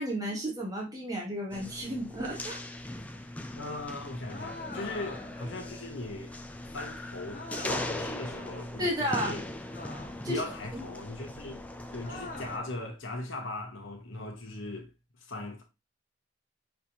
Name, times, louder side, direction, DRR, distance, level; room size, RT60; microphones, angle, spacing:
voice 1, 0.0-2.6 8.8-9.3 10.2-10.4 10.7-10.8, equal, 20° right, 1.1 m, -32 dB
sound 1, 1.5-12.6, left 1 dB, 5° left, 0.4 m, -40 dB
voice 2, 3.6-6.4 6.6-9.5 10.2-11.7 11.9-14.9 15.2-15.6, left 2 dB, 75° left, 1.1 m, -39 dB
sound 2, 4.3-5.5 7.3-8.2 9.7-10.4 12.0-12.8, left 2 dB, 40° left, 1.2 m, -43 dB
5.6 x 3.3 x 2.8 m
head